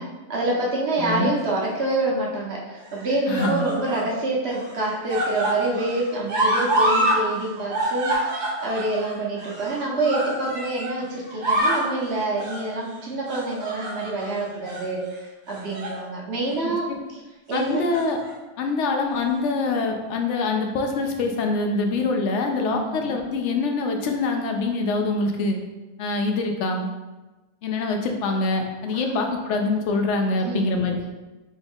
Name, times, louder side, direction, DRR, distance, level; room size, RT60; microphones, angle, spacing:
voice 1, 0.0-16.9 17.5-17.8 22.6-23.0 28.9-29.2 30.3-30.6, right 2 dB, 65° right, -4 dB, 1.1 m, -27 dB
voice 2, 1.0-1.4 3.3-3.6 16.6-16.7 17.5-18.2 18.6-25.6 26.0-26.9 27.6-31.0, left 3 dB, 80° left, 3 dB, 0.9 m, -24 dB
sound 1, 1.4-1.9 2.8-4.1 4.5-7.2 7.5-10.9 11.3-11.9 12.4-12.7 13.2-14.3 14.6-14.9 15.5-16.0 16.4-16.6 17.7-18.3 19.2-19.3, right 1 dB, 45° right, 0.9 m, -26 dB
4.3 x 2.4 x 3.5 m, 1.1 s
omnidirectional pair, 1.2 m